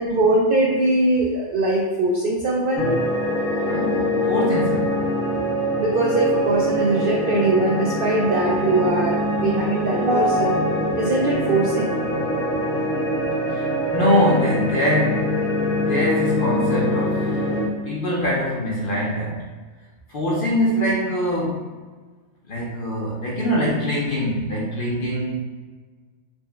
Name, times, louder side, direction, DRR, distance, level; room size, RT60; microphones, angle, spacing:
voice 1, 0.0-3.0 5.8-11.9, right 2 dB, 75° right, -2 dB, 0.5 m, -21 dB
sound 1, 2.8-17.7, equal, 75° left, 1.2 m, -24 dB
voice 2, 3.7-5.1 13.5-17.5 17.8-19.4 20.1-21.7 22.5-25.4, equal, 50° left, -4 dB, 0.7 m, -23 dB
4.3 x 2.1 x 3.4 m, 1.4 s
omnidirectional pair, 1.5 m